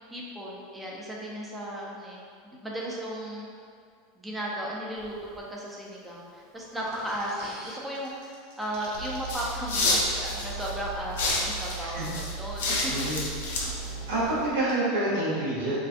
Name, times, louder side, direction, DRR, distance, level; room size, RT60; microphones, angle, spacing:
voice 1, 0.1-3.5 4.2-13.1, equal, 10° right, -4 dB, 0.4 m, -36 dB
Breathing, 4.9-5.4 5.9-8.2, equal, 35° right, 0.8 m, -47 dB
sound 1, 6.9-7.7 7.9-9.3 9.6-9.7 10.1-12.3 12.6-12.7 12.8-14.7, right 1 dB, 65° right, 0.6 m, -46 dB
sound 2, 8.9-14.5, left 1 dB, 85° left, 0.5 m, -30 dB
voice 2, 12.9-13.2 14.1-15.8, right 1 dB, 90° right, -8 dB, 0.9 m, -27 dB
2.4 x 2.3 x 2.4 m, 2.2 s
supercardioid pair, 120°, 0 cm